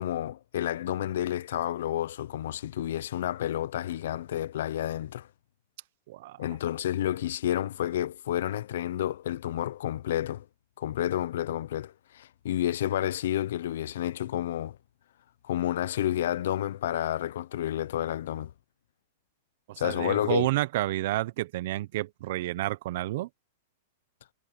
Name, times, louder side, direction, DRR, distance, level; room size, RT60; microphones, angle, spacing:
voice 1, 0.0-5.3 6.4-10.4 10.8-14.8 15.4-18.5 19.8-20.5, left 12 dB, 75° left, 0.8 m, -30 dB
voice 2, 6.1-6.4 19.7-23.3, right 16 dB, 60° right, 0.9 m, -30 dB
supercardioid pair, 150°, 0 cm